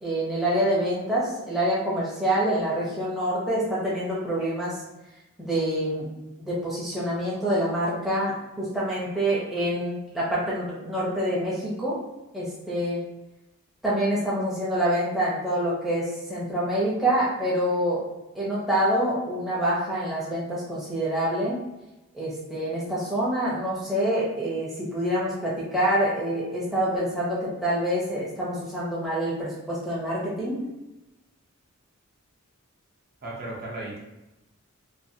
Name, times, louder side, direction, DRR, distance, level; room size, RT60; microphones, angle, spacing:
voice 1, 0.0-4.8 5.4-6.1 6.4-12.0 12.3-13.1 13.8-18.1 18.3-21.6 22.1-30.7, right 1 dB, ahead, -9 dB, 0.6 m, -26 dB
voice 2, 33.2-34.0, right 2 dB, 45° right, -4 dB, 0.6 m, -35 dB
2.6 x 2.4 x 2.6 m, 0.99 s
head